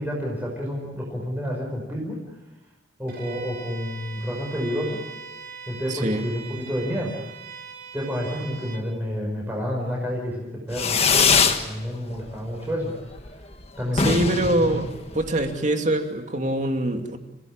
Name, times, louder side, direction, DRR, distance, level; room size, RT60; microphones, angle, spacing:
voice 1, 0.0-2.2 3.0-5.1 5.7-7.2 7.9-12.9 13.8-14.8, equal, 10° right, -2 dB, 5.5 m, -29 dB
Bowed string instrument, 3.1-8.9, right 6 dB, 65° right, 6.7 m, -41 dB
voice 2, 5.9-6.3 13.9-14.9 15.1-17.2, right 1 dB, 40° right, 5 dB, 2.5 m, -24 dB
Fireworks, 10.7-11.6 12.0-12.6 12.8-12.9 13.2-13.3 13.5-13.6 13.9-15.5, left 5 dB, 35° left, 1.7 m, -22 dB
30.0 x 17.0 x 8.8 m, 1.0 s
head